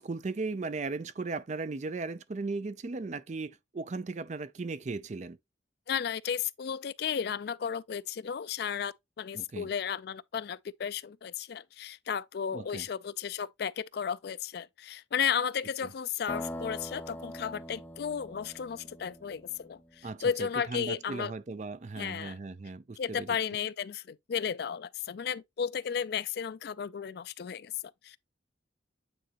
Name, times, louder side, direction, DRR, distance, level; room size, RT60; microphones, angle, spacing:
voice 1, 0.0-5.4 9.3-9.7 12.5-12.9 15.8-15.9 20.0-23.4, right 3 dB, 40° right, 0.4 m, -37 dB
voice 2, 5.9-21.3 22.0-22.4 23.0-27.7 28.0-28.2, left 7 dB, 55° left, 0.3 m, -34 dB
sound 1, 16.3-20.1, equal, 10° left, 0.6 m, -42 dB
8.9 x 3.9 x 3.0 m
head